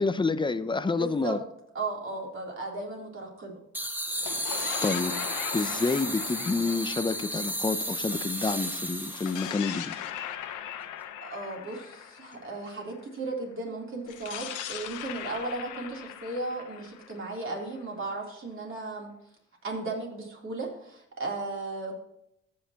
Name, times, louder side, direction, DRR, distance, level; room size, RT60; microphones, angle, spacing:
voice 1, 0.0-1.4 4.8-5.1 5.5-10.0, left 3 dB, 15° left, 13 dB, 0.6 m, -28 dB
voice 2, 1.0-1.4 1.7-3.6 11.2-19.1 19.6-22.0, right 2 dB, 40° right, -1 dB, 3.4 m, -35 dB
sound 1, 3.7-9.5, equal, 5° right, 1.1 m, -33 dB
sound 2, 4.1-8.5 9.1-13.0 14.1-17.9, left 10 dB, 90° left, 1.0 m, -39 dB
14.5 x 6.5 x 2.9 m, 0.76 s
cardioid pair, 90°, 30 cm